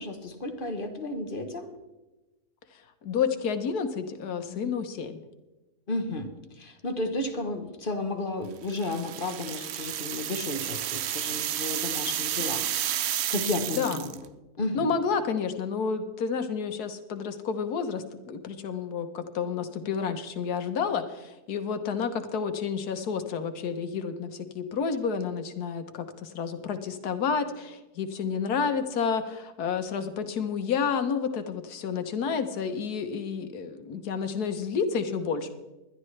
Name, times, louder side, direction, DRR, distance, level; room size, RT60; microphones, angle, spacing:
voice 1, 0.0-1.7 4.5-4.7 5.9-6.3 6.5-14.1 14.6-14.9, left 2 dB, 35° left, 6 dB, 1.2 m, -33 dB
voice 2, 3.0-5.2 13.3-13.4 13.7-14.0 14.7-35.5, left 6 dB, 80° left, 8 dB, 1.6 m, -30 dB
sound 1, 8.7-14.2, right 11 dB, 70° right, 0.6 m, -31 dB
20.0 x 12.0 x 3.3 m, 1.1 s
omnidirectional pair, 1.6 m